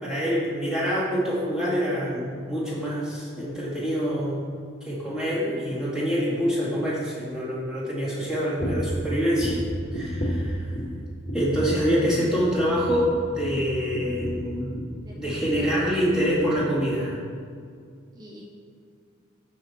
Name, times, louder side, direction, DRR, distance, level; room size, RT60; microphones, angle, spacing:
voice 1, 0.0-4.4 4.8-9.6 9.9-10.7 11.3-14.7 15.1-17.2, equal, 5° right, -9 dB, 2.3 m, -26 dB
sound 1, 8.6-9.0 9.4-11.0 11.3-11.8 12.1-12.3 12.6-15.0 15.3-15.8 16.1-16.3 16.6-16.7, equal, 25° left, 1.7 m, -31 dB
voice 2, 15.0-16.1 18.1-18.5, equal, 20° right, -4 dB, 1.3 m, -42 dB
14.0 x 5.4 x 4.2 m, 2.2 s
head